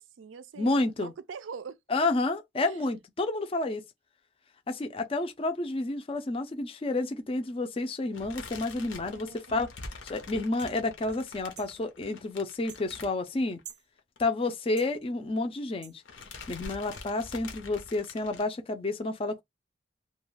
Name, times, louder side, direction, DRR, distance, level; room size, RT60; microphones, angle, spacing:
voice 1, 0.0-2.0 2.6-2.8 9.0-9.6, right 5 dB, 90° right, 0.4 m, -44 dB
voice 2, 0.6-1.1 1.9-3.8 4.7-9.7 10.0-13.6 14.2-16.0 16.5-19.4, left 2 dB, 30° left, 0.4 m, -30 dB
sound 1, 8.1-13.7 14.0-14.2 14.4-14.5 15.5-15.8 16.1-18.4, left 3 dB, 80° left, 0.7 m, -45 dB
sound 2, 10.6-10.7 11.5-11.7 12.7-12.8 13.6-13.9 14.8-14.9 15.8-16.0 16.9-17.0, right 9 dB, 40° right, 0.5 m, -47 dB
2.4 x 2.2 x 3.2 m
head